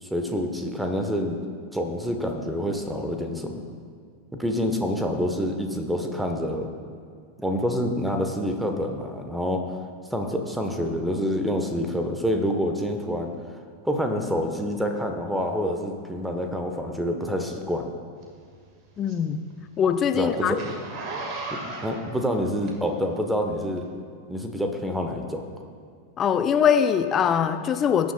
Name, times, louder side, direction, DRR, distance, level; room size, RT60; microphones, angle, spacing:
voice 1, 0.0-1.4 1.7-3.6 4.3-6.7 7.4-9.6 10.1-13.3 13.8-17.9 20.1-20.6 21.5-23.8 24.3-25.5, equal, 5° right, 3 dB, 1.1 m, -27 dB
Zipper (clothing), 18.2-23.2 23.7-23.8, right 3 dB, 35° right, 1.8 m, -36 dB
voice 2, 19.0-19.5 19.8-20.6 26.2-28.1, left 8 dB, 25° left, 9 dB, 0.5 m, -22 dB
22.0 x 9.4 x 2.3 m, 2.2 s
figure-of-eight pair, 90°, 0 cm